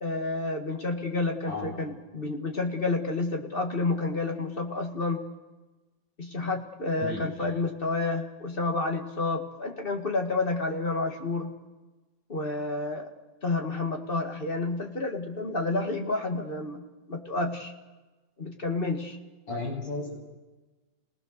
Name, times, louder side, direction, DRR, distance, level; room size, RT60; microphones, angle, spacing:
voice 1, 0.0-5.2 6.2-11.6 12.3-13.1 13.4-17.7 18.4-19.2, left 3 dB, 30° left, 3 dB, 2.0 m, -30 dB
voice 2, 19.5-20.3, left 2 dB, 85° left, -3 dB, 8.6 m, -34 dB
28.0 x 18.5 x 6.7 m, 1.2 s
omnidirectional pair, 2.0 m